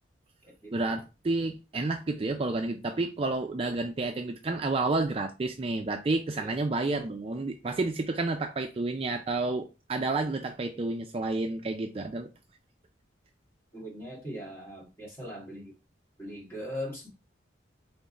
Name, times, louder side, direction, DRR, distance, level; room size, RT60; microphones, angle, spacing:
voice 1, 0.7-12.3, right 3 dB, 30° right, 0.4 m, -30 dB
voice 2, 13.7-15.7 16.2-17.1, equal, 15° left, 1.8 m, -40 dB
3.7 x 3.5 x 4.1 m
head